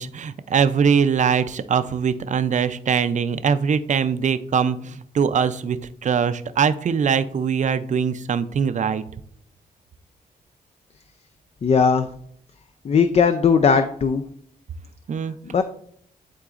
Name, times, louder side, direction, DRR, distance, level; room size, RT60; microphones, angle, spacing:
voice 1, 0.0-9.0 15.1-15.3, right 6 dB, 50° right, 12 dB, 0.5 m, -22 dB
voice 2, 11.6-12.1 12.8-14.2 15.5-15.6, left 6 dB, 40° left, 9 dB, 0.4 m, -18 dB
11.5 x 3.8 x 2.5 m, 0.64 s
cardioid pair, 85°, 16 cm